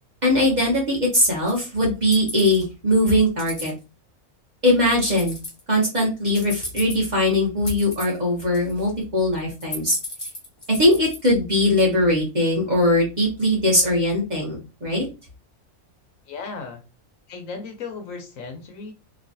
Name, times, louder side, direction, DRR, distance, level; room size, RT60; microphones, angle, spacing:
voice 1, 0.2-3.7 4.6-5.4 5.7-10.0 10.7-15.1, left 1 dB, 35° right, -3 dB, 1.0 m, -20 dB
sound 1, 1.5-1.6 2.1-2.6 3.2-3.7 5.1-5.6 6.3-7.2 7.6-8.2 8.5-9.0 9.4-11.2, left 2 dB, 20° left, 1.0 m, -34 dB
voice 2, 16.3-16.8 17.3-18.9, left 4 dB, 70° left, 5 dB, 1.0 m, -35 dB
3.1 x 2.3 x 2.6 m, 0.28 s
omnidirectional pair, 1.5 m